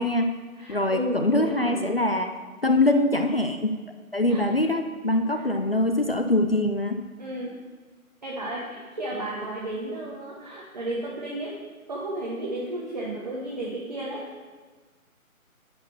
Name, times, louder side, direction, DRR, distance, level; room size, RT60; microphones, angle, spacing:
voice 1, 0.0-0.4 0.7-2.3 2.6-3.8 4.1-7.0, left 2 dB, 45° left, 6 dB, 0.4 m, -23 dB
voice 2, 0.6-1.8 4.2-4.4 5.3-5.5 7.2-7.5 8.2-11.6 11.9-14.2, right 1 dB, 30° right, -5 dB, 0.9 m, -33 dB
10.0 x 4.2 x 5.8 m, 1.4 s
figure-of-eight pair, 165°, 43 cm